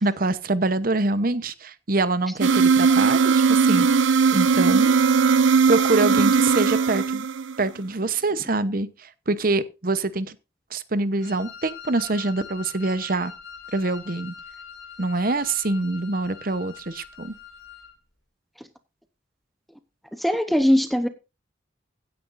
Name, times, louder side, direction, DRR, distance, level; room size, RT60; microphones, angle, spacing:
voice 1, 0.0-3.9 4.3-5.0 5.7-7.3 7.6-10.4 10.7-13.3 13.7-14.3 15.0-17.3, right 2 dB, 45° right, 0.9 m, -25 dB
sound 1, 2.4-7.7, right 5 dB, 80° right, 0.7 m, -19 dB
Wind instrument woodwind instrument, 11.2-17.9, left 7 dB, 80° left, 2.9 m, -43 dB
voice 2, 20.1-21.1, equal, ahead, 0.8 m, -21 dB
16.0 x 9.6 x 2.6 m
head